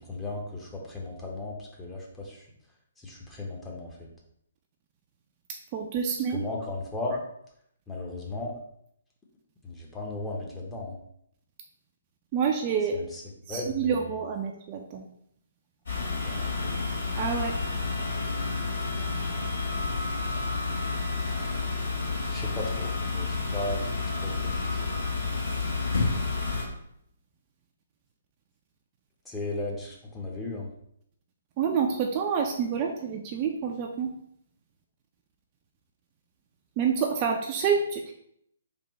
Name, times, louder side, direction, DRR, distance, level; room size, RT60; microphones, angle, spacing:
voice 1, 0.1-2.4 3.0-4.1 6.3-7.2 7.9-8.5 9.6-10.9 12.9-13.2 13.5-14.1 16.2-16.8 22.3-23.8 24.1-24.8 29.3-30.7, left 2 dB, 10° left, -2 dB, 0.7 m, -36 dB
voice 2, 5.7-6.5 12.3-13.0 13.5-15.0 17.2-17.5 31.6-34.1 36.8-38.1, right 6 dB, 30° right, 2 dB, 0.4 m, -28 dB
sound 1, 15.9-26.6, left 4 dB, 60° left, 1.5 m, -30 dB
3.5 x 2.4 x 4.1 m, 0.72 s
figure-of-eight pair, 130°, 0 cm